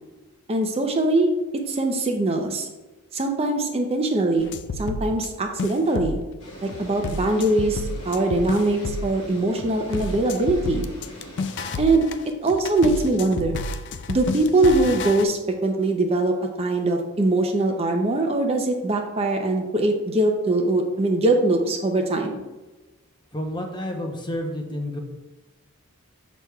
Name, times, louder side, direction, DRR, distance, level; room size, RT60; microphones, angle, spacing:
voice 1, 0.5-1.3 1.7-2.7 3.1-4.5 4.8-6.2 6.6-10.9 11.8-12.1 12.4-13.6 14.1-22.4, right 2 dB, 30° right, 3 dB, 0.5 m, -22 dB
sound 1, 4.4-5.3 5.6-6.3 6.7-9.2 9.6-15.2, left 2 dB, 55° left, 0.4 m, -31 dB
sound 2, 6.4-11.8, equal, 70° left, 1.8 m, -42 dB
voice 2, 23.3-25.0, left 1 dB, 20° left, 3 dB, 0.7 m, -30 dB
6.9 x 6.1 x 2.3 m, 1.1 s
head